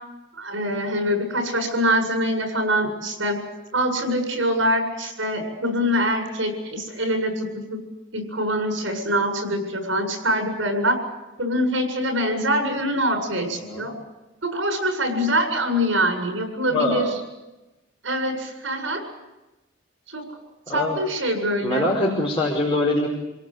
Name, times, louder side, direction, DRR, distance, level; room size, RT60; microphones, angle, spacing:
voice 1, 0.3-3.4 3.7-7.8 8.1-11.0 11.4-13.9 14.4-17.1 18.0-19.0 20.1-20.2 20.7-21.8, equal, 80° right, 5 dB, 7.8 m, -24 dB
voice 2, 16.7-17.0 20.7-21.0 21.6-23.1, left 1 dB, 25° left, -3 dB, 5.0 m, -23 dB
29.0 x 18.5 x 8.2 m, 1.0 s
head